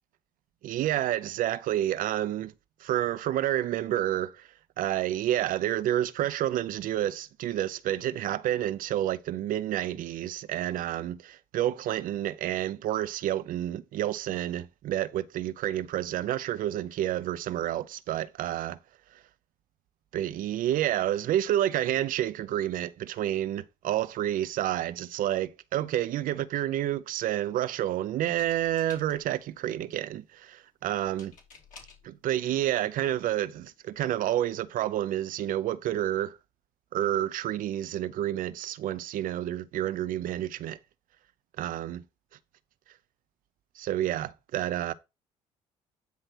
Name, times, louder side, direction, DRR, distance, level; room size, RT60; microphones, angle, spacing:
voice 1, 0.6-2.5 2.8-4.5 4.8-18.8 20.1-31.3 32.0-36.4 36.9-40.8 41.6-42.0 43.8-44.9, right 12 dB, 65° right, 0.7 m, -29 dB
sound 1, 28.2-29.4 31.2-32.1 33.1-33.2 33.5-33.8, left 5 dB, 60° left, 2.8 m, -52 dB
9.3 x 3.2 x 6.0 m
hypercardioid pair, 60°, 15 cm